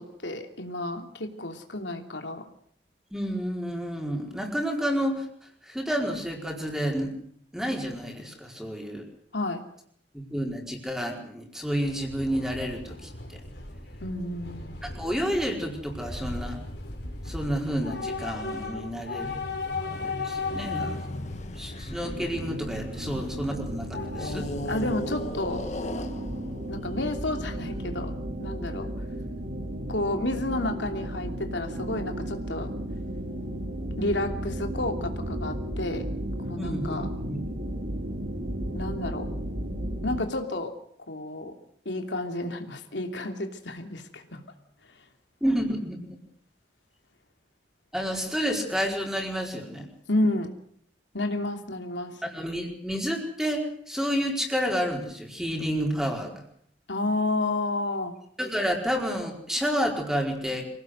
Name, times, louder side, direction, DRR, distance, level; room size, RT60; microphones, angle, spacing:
voice 1, 0.0-2.4 9.3-9.6 14.0-14.8 24.7-25.6 26.7-28.1 28.4-28.9 29.9-32.7 34.0-36.0 36.4-37.1 38.7-39.3 40.0-40.7 41.1-41.5 41.8-44.4 50.1-50.5 51.1-52.2 56.9-58.1, left 2 dB, 85° left, 5 dB, 3.0 m, -30 dB
voice 2, 3.1-5.3 5.6-7.1 7.5-9.0 10.1-13.4 14.8-16.6 17.2-19.4 20.0-21.0 21.6-24.5 36.6-37.0 37.3-37.4 45.4-46.0 47.9-49.8 52.2-56.3 58.4-60.6, equal, 5° right, 1 dB, 4.7 m, -30 dB
Train / Subway metro underground, 11.8-26.5, left 3 dB, 60° left, 4.8 m, -38 dB
sound 1, 18.7-23.4 24.1-27.5, left 1 dB, 40° left, 1.7 m, -38 dB
sound 2, 22.0-40.2, right 1 dB, 55° right, 2.9 m, -34 dB
25.5 x 18.0 x 8.0 m, 0.62 s
head